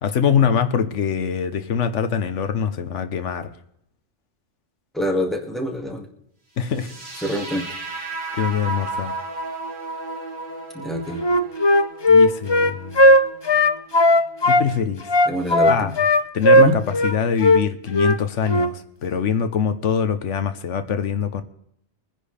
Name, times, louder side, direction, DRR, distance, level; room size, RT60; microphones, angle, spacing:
voice 1, 0.0-3.5 6.6-6.9 8.4-9.1 12.1-13.1 14.5-15.1 15.6-15.9 16.3-21.4, left 7 dB, 85° left, 1.3 m, -23 dB
voice 2, 4.9-6.1 7.2-7.7 10.7-11.2 15.3-15.9 16.5-16.7, left 1 dB, ahead, 2.0 m, -26 dB
sound 1, 6.7-14.7, right 3 dB, 45° right, 2.4 m, -34 dB
Wind instrument woodwind instrument, 11.2-14.7 15.1-17.2 17.4-17.6 17.9-18.2 18.5-18.7, left 1 dB, 30° left, 0.5 m, -15 dB
23.5 x 10.0 x 3.4 m
omnidirectional pair, 1.2 m